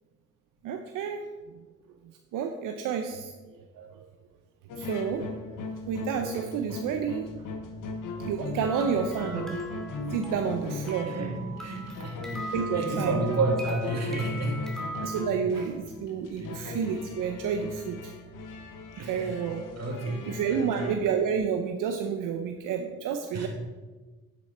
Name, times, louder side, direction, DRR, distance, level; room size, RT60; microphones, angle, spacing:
voice 1, 0.6-1.6 2.3-4.1 4.8-7.3 8.2-9.6 10.0-11.1 12.5-13.2 14.9-18.1 19.1-19.6 20.3-23.5, right 7 dB, 85° right, 5 dB, 0.7 m, -30 dB
sound 1, 4.7-21.0, left 3 dB, 80° left, 1.3 m, -38 dB
sound 2, 8.6-15.2, right 2 dB, ahead, 2.4 m, -41 dB
voice 2, 11.0-14.8 15.2-15.3 16.4-16.6 19.0-19.5 19.8-20.9 23.3-23.5, right 2 dB, 55° right, 1 dB, 2.5 m, -31 dB
9.7 x 8.4 x 4.2 m, 1.3 s
supercardioid pair, 55°, 31 cm